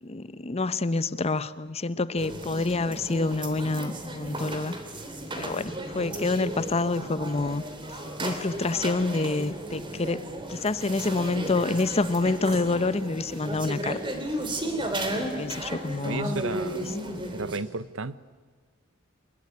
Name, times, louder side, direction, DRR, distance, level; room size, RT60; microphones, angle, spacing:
voice 1, 0.0-4.8 5.4-7.6 8.2-14.0 15.1-16.4 16.8-16.9, left 3 dB, 30° left, 15 dB, 0.8 m, -27 dB
sound 1, 2.2-17.6, right 1 dB, 25° right, 3.1 m, -34 dB
voice 2, 16.0-16.9 17.3-18.2, right 3 dB, 70° right, 16 dB, 0.9 m, -33 dB
25.5 x 22.0 x 9.7 m, 1.5 s
head